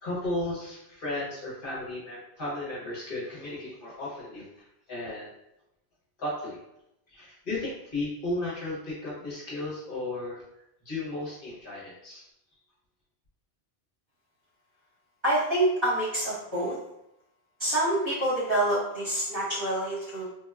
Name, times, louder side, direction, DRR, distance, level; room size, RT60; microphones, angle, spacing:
voice 1, 0.0-4.4 4.9-5.3 6.2-6.6 7.1-10.4 10.9-12.2, left 2 dB, 55° left, -7 dB, 0.9 m, -34 dB
voice 2, 15.2-16.8 17.6-20.3, right 1 dB, 25° right, -10 dB, 1.0 m, -26 dB
3.2 x 2.1 x 2.2 m, 0.84 s
omnidirectional pair, 1.1 m